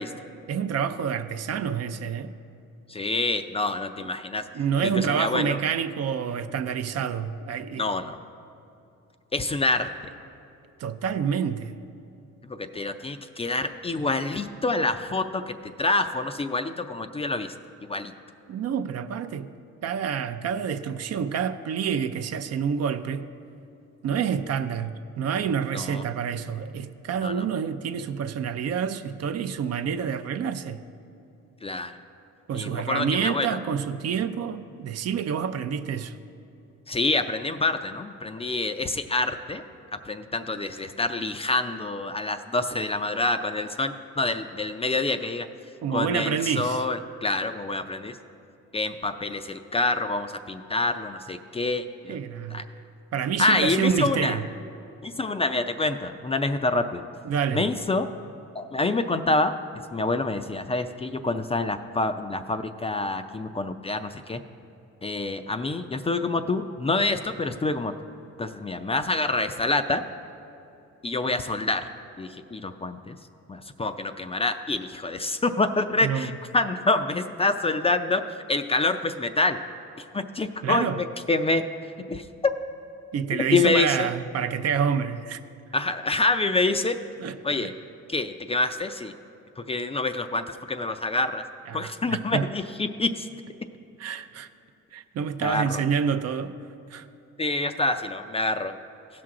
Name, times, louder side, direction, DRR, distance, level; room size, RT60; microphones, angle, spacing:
voice 1, 0.5-2.3 4.5-7.9 10.8-11.8 18.5-19.5 19.8-23.3 24.0-30.8 32.5-36.2 45.8-46.8 52.1-52.6 53.1-54.5 57.2-57.7 76.0-76.4 80.6-81.0 83.1-85.4 87.2-87.7 91.7-92.5 94.0-94.5 94.9-96.5 96.9-97.1, right 7 dB, 55° right, 10 dB, 0.5 m, -28 dB
voice 2, 2.9-4.4 4.8-5.6 7.8-8.2 9.3-9.9 12.4-17.5 17.9-18.1 25.7-26.0 27.2-27.4 31.6-32.0 32.6-33.6 36.9-39.6 40.0-45.5 45.9-48.2 48.7-52.2 52.5-52.6 53.4-54.4 55.0-57.0 57.5-58.1 58.5-59.5 59.9-64.4 65.0-67.9 68.4-70.0 71.0-71.9 72.2-73.2 73.5-78.2 78.5-79.6 80.1-81.6 82.1-82.2 83.5-84.1 85.7-87.0 87.4-87.7 88.1-89.1 89.6-91.4 91.7-93.3 95.4-95.8 97.4-98.7, left 2 dB, 20° left, 8 dB, 0.4 m, -26 dB
15.5 x 6.0 x 3.7 m, 2.8 s
cardioid pair, 90°, 30 cm